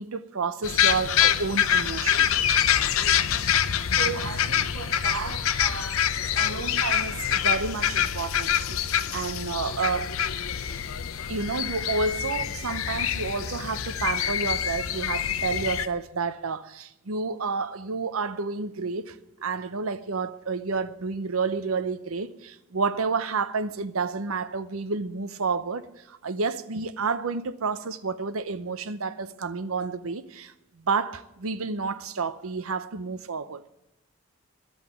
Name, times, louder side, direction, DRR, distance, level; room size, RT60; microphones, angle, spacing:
voice 1, 0.0-2.3 4.0-10.1 11.2-33.7, right 4 dB, 80° right, 0.7 m, -30 dB
sound 1, 0.6-15.9, left 9 dB, 75° left, 0.6 m, -25 dB
11.0 x 8.0 x 9.3 m
head